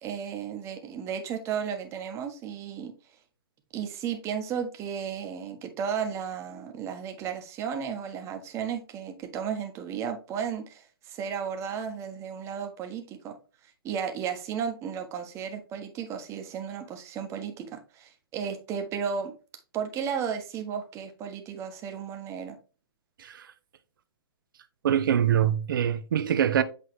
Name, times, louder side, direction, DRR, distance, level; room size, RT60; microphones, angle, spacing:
voice 1, 0.0-2.9 3.7-13.4 13.8-19.3 19.7-22.6, right 7 dB, 20° right, 1.3 m, -34 dB
voice 2, 24.8-26.6, right 9 dB, 60° right, 0.9 m, -24 dB
8.3 x 4.0 x 3.3 m
hypercardioid pair, 130°, 13 cm